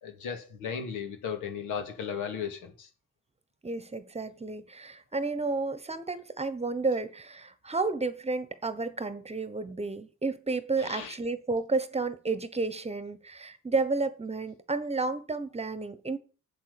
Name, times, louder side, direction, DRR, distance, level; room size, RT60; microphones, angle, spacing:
voice 1, 0.0-2.9 10.8-11.2, left 7 dB, 90° left, 2.2 m, -36 dB
voice 2, 3.6-16.2, right 3 dB, 20° right, 1.1 m, -31 dB
7.9 x 7.5 x 6.8 m
cardioid pair, 90°, 30 cm